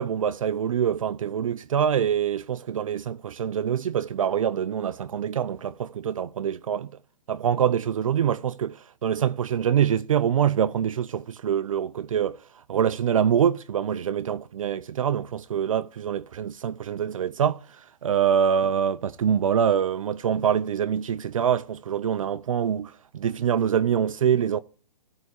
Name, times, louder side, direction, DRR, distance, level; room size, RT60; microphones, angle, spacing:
voice 1, 0.0-6.9 7.3-8.8 9.0-12.4 12.7-17.6 18.0-24.6, right 8 dB, 55° right, 0.5 m, -25 dB
14.0 x 4.8 x 8.0 m
hypercardioid pair, 165°, 21 cm